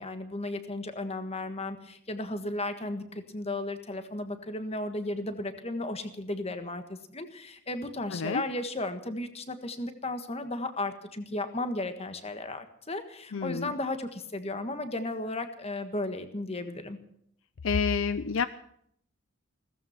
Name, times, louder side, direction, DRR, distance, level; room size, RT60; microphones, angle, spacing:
voice 1, 0.0-17.0, left 2 dB, 30° left, 9 dB, 1.5 m, -35 dB
voice 2, 8.1-8.4 13.3-13.7 17.6-18.4, left 5 dB, 60° left, 14 dB, 0.5 m, -28 dB
16.5 x 14.5 x 5.8 m, 0.68 s
head